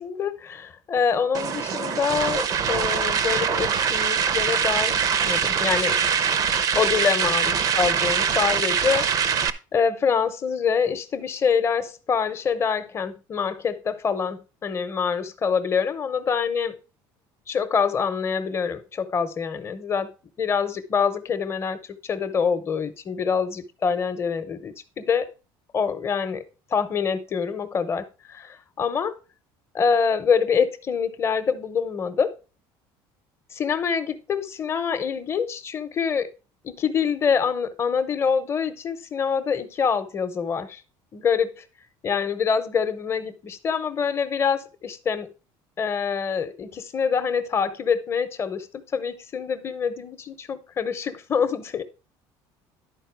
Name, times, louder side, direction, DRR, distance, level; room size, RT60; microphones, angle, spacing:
voice 1, 0.0-6.0 6.7-9.1 9.7-16.7 17.5-20.1 20.4-25.3 25.7-26.4 26.7-29.2 29.7-32.3 33.5-36.3 36.6-40.8 41.1-41.6 42.0-45.3 45.8-51.8, left 6 dB, 25° left, 10 dB, 0.8 m, -25 dB
sound 1, 1.3-9.5, right 7 dB, 40° right, 0.6 m, -23 dB
11.0 x 4.4 x 4.6 m, 0.32 s
cardioid pair, 150°, 10 cm